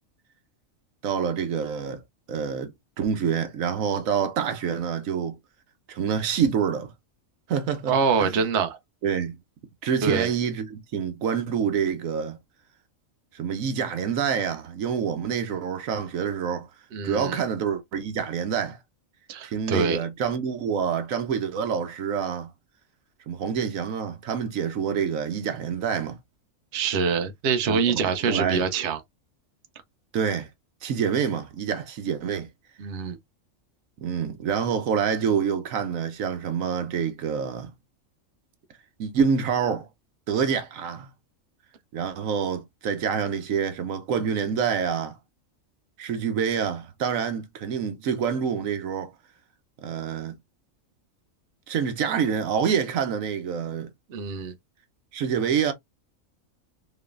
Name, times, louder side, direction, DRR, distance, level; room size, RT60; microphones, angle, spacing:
voice 1, 1.0-2.0 2.3-5.4 5.9-6.9 7.5-8.4 9.0-9.4 9.8-12.4 13.3-16.7 17.0-18.8 19.4-22.5 23.3-26.2 27.7-28.6 30.1-30.5 30.8-32.5 34.0-37.7 39.0-39.9 40.3-41.1 41.9-45.2 46.0-49.1 49.8-50.4 51.7-53.9 55.1-55.7, right 7 dB, 85° right, 1.2 m, -27 dB
voice 2, 7.9-8.8 10.0-10.3 16.9-17.4 19.3-20.0 26.7-29.0 32.8-33.2 54.1-54.5, right 5 dB, 60° right, 1.0 m, -25 dB
3.9 x 3.3 x 2.5 m
omnidirectional pair, 1.4 m